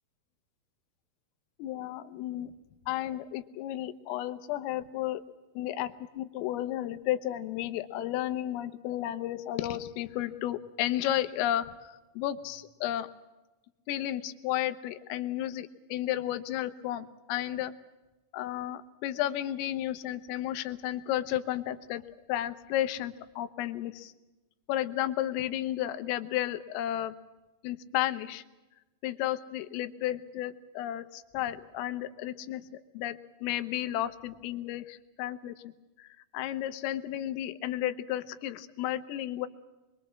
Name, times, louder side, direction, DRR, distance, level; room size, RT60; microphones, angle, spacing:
voice 1, 1.6-2.5 2.9-5.2 5.6-13.1 13.9-17.7 18.3-22.0 22.3-24.1 24.7-27.1 27.6-28.4 29.0-32.7 33.0-35.6 36.0-39.5, left 13 dB, 90° left, 11 dB, 3.7 m, -33 dB
25.0 x 23.0 x 7.4 m, 1.1 s
omnidirectional pair, 5.8 m